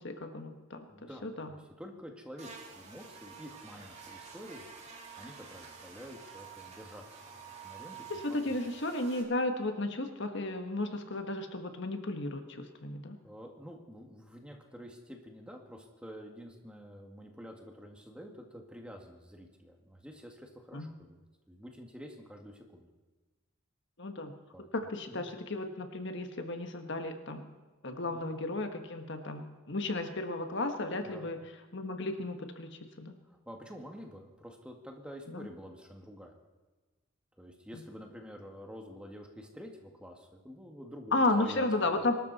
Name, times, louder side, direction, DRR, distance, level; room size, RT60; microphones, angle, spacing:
voice 1, 0.0-0.8 1.2-1.5 8.1-13.2 20.7-20.9 24.0-24.3 24.7-27.5 27.8-31.4 31.7-33.1 35.3-35.5 41.1-42.1, left 2 dB, 60° left, 6 dB, 1.4 m, -34 dB
voice 2, 0.9-4.7 5.2-8.7 13.2-21.2 21.5-22.9 24.5-24.7 25.1-25.3 28.1-28.3 31.0-31.3 33.3-36.4 37.4-41.7 41.9-42.0, equal, 5° right, 2 dB, 2.0 m, -48 dB
Buzz, 2.4-9.2, right 6 dB, 35° right, 2.6 m, -49 dB
23.5 x 13.0 x 4.2 m, 1.2 s
head